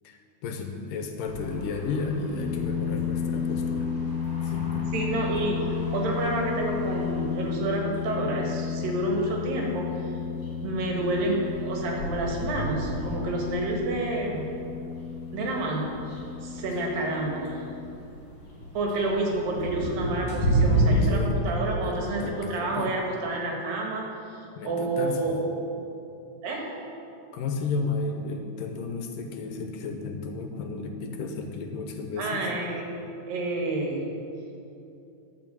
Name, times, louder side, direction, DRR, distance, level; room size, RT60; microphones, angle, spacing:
voice 1, 0.0-3.9 4.4-4.9 20.8-21.4 21.8-23.0 24.6-25.2 27.3-32.5, left 4 dB, 75° left, 4 dB, 2.4 m, -33 dB
sound 1, 1.3-21.1, right 1 dB, 25° left, 3.1 m, -33 dB
sound 2, 2.3-17.9, left 7 dB, 45° left, 1.1 m, -33 dB
voice 2, 4.9-10.1 10.6-14.5 15.3-15.9 16.4-17.6 18.7-25.4 26.4-26.7 32.2-32.9 33.3-34.0, right 2 dB, 75° right, -1 dB, 3.3 m, -29 dB
11.5 x 5.9 x 7.6 m, 2.7 s
omnidirectional pair, 4.1 m